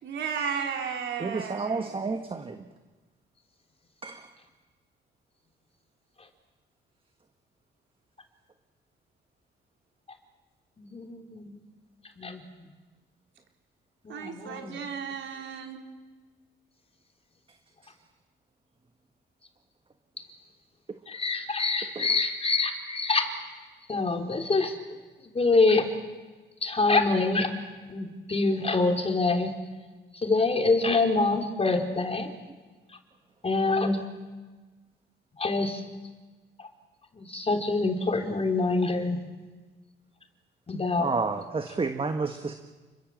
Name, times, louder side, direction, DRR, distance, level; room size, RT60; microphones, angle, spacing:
voice 1, 0.0-2.0 14.1-15.8, right 6 dB, 70° right, 2 dB, 4.4 m, -34 dB
voice 2, 1.2-2.6 4.0-4.2 21.9-22.2 41.0-42.5, right 4 dB, 25° right, 6 dB, 1.5 m, -30 dB
voice 3, 10.9-11.6 12.2-12.4 14.1-14.8 21.1-23.3 23.9-24.7 25.4-25.9 26.6-27.5 27.9-29.5 30.2-32.3 33.4-34.0 35.4-35.8 37.3-39.2 40.7-41.1, left 3 dB, 30° left, 4 dB, 3.7 m, -25 dB
29.5 x 22.0 x 7.5 m, 1.3 s
cardioid pair, 90°, 20 cm